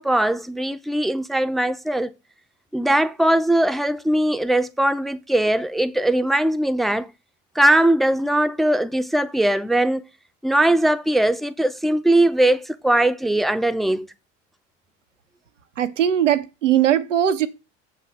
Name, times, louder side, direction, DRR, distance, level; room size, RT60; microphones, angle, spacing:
voice 1, 0.0-2.1 2.7-7.1 7.6-10.0 10.4-14.1, right 1 dB, ahead, 0.6 m, -20 dB
voice 2, 15.8-17.5, right 10 dB, 90° right, 0.8 m, -19 dB
7.6 x 4.4 x 6.3 m
hypercardioid pair, 65°, 36 cm